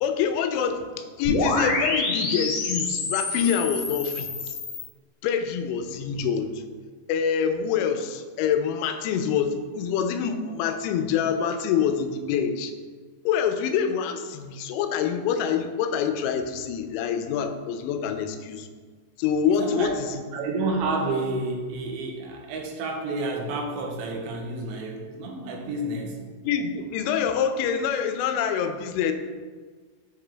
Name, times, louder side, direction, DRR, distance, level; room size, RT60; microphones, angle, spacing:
voice 1, 0.0-4.6 5.2-6.6 7.1-12.7 13.3-18.7 19.2-20.3 26.4-29.1, left 7 dB, 90° left, 8 dB, 2.9 m, -26 dB
sound 1, 1.2-4.9, left 3 dB, 70° left, 2.0 m, -27 dB
voice 2, 19.5-19.9 20.3-26.2, right 2 dB, 90° right, 1 dB, 3.0 m, -30 dB
7.3 x 4.9 x 3.3 m, 1.6 s
omnidirectional pair, 5.2 m